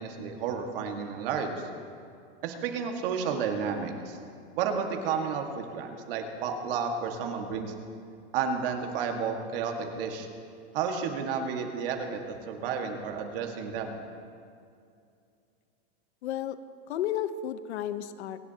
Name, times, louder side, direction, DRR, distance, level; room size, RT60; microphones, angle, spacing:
voice 1, 0.0-1.6 2.4-4.2 4.5-7.7 8.3-10.3 10.7-13.9, right 6 dB, 60° right, 3 dB, 1.8 m, -31 dB
voice 2, 16.2-16.6 16.9-18.4, left 10 dB, 85° left, 12 dB, 0.9 m, -32 dB
26.0 x 10.5 x 2.9 m, 2.4 s
supercardioid pair, 155°, 32 cm